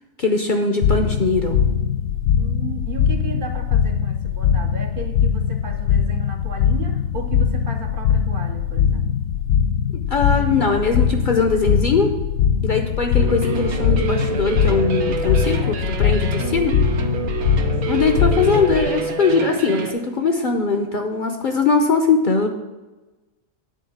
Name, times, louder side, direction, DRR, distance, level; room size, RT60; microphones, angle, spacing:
voice 1, 0.2-1.6 9.9-12.1 12.6-16.8 17.9-22.5, left 4 dB, 45° left, 4 dB, 0.7 m, -20 dB
sound 1, 0.8-18.9, left 8 dB, 85° left, 1.0 m, -21 dB
voice 2, 2.4-9.1, right 5 dB, 50° right, 4 dB, 0.7 m, -34 dB
sound 2, 13.2-19.9, right 6 dB, 80° right, 1.3 m, -27 dB
9.2 x 4.3 x 7.2 m, 1.1 s
omnidirectional pair, 1.4 m